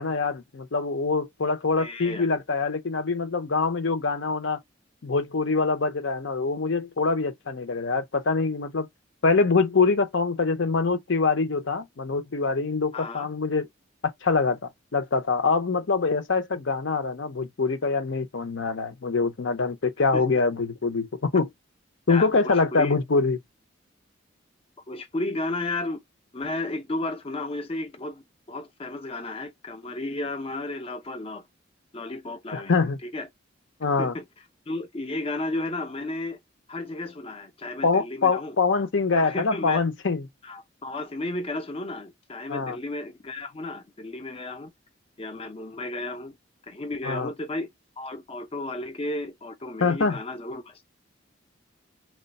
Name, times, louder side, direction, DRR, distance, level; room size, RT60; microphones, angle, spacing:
voice 1, 0.0-4.6 5.0-8.9 9.2-13.6 14.2-21.5 22.1-23.4 32.5-33.0 33.8-34.1 37.8-40.3 42.5-42.8 47.0-47.3 49.8-50.2, left 4 dB, 70° left, 0.7 m, -24 dB
voice 2, 1.8-2.3 12.9-13.3 20.1-20.2 22.1-22.9 24.9-26.0 26.3-31.5 31.9-32.7 33.0-33.3 34.0-34.2 34.7-36.4 36.7-38.6 39.1-39.8 40.4-44.7 45.2-46.4 46.7-47.7 48.0-50.9, left 2 dB, 30° left, 0.5 m, -33 dB
3.0 x 2.2 x 4.0 m
head